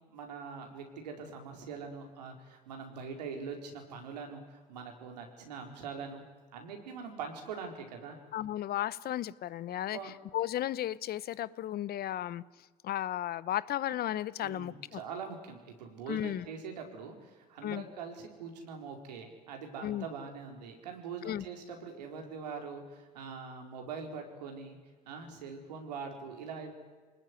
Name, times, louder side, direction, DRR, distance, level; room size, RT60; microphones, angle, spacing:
voice 1, 0.1-6.2 6.5-8.2 9.9-10.1 14.4-24.8 25.1-26.7, right 5 dB, 90° right, 3 dB, 4.4 m, -43 dB
voice 2, 8.3-12.4 12.8-15.0 16.1-16.5 17.6-17.8 19.8-20.1 21.2-21.4, left 12 dB, 50° left, 19 dB, 0.9 m, -34 dB
25.0 x 20.0 x 9.8 m, 1.4 s
hypercardioid pair, 75°, 20 cm